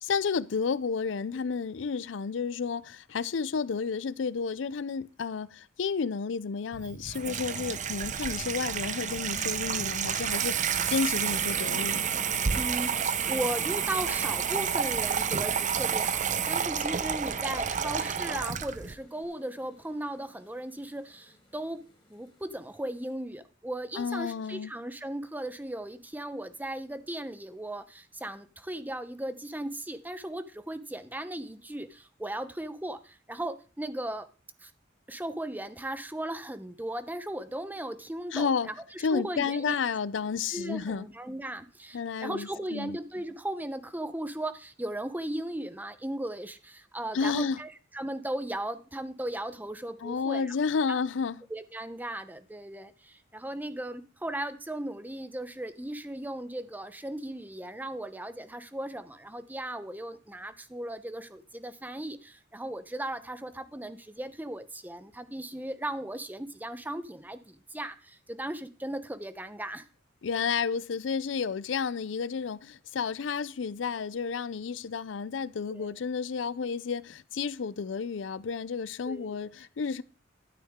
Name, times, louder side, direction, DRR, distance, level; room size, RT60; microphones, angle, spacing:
voice 1, 0.0-12.1 23.9-24.7 38.3-38.7 39.0-41.1 41.9-43.0 47.1-47.6 50.0-51.4 70.2-80.0, left 5 dB, 75° left, 0.5 m, -31 dB
Water tap faucet / Sink (filling or washing), 6.7-18.9, right 7 dB, 40° right, 0.6 m, -30 dB
sound 1, 11.3-23.1, left 1 dB, 25° left, 3.9 m, -49 dB
voice 2, 12.5-21.8 22.1-34.3 34.6-34.7 35.1-39.8 40.5-47.7 47.9-50.6 50.9-51.0 51.5-69.8 75.7-76.0 79.1-79.4, right 1 dB, 10° right, 0.8 m, -37 dB
12.5 x 8.5 x 3.6 m
head